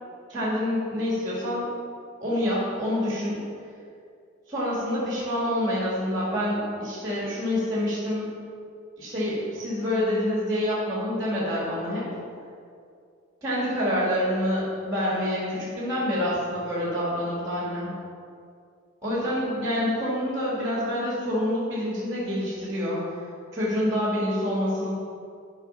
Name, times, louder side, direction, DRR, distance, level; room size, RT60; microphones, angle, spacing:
voice 1, 0.3-1.7 2.2-3.4 4.5-8.3 9.0-12.1 13.4-17.9 19.0-23.0 23.5-24.9, left 1 dB, 20° right, -7 dB, 2.1 m, -27 dB
12.5 x 5.0 x 5.7 m, 2.4 s
head